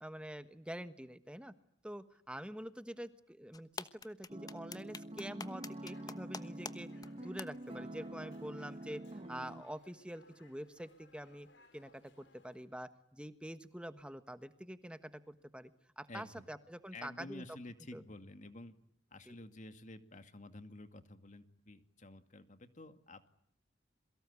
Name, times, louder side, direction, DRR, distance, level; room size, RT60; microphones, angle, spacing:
voice 1, 0.0-1.5 1.8-9.0 9.3-11.5 11.7-15.7 16.0-17.4 17.9-18.0 19.3-19.4, equal, 5° right, 11 dB, 1.3 m, -46 dB
sound 1, 3.5-6.7 7.0-7.1 7.4-7.5, left 4 dB, 20° left, 1.2 m, -44 dB
sound 2, 4.3-9.6, right 1 dB, 30° right, 1.3 m, -47 dB
Dog, 5.7-12.7, left 2 dB, 65° left, 6.2 m, -65 dB
voice 2, 16.1-16.5 16.9-18.7 19.1-23.3, left 2 dB, 40° left, 9 dB, 2.3 m, -51 dB
28.0 x 23.5 x 8.3 m, 0.67 s
head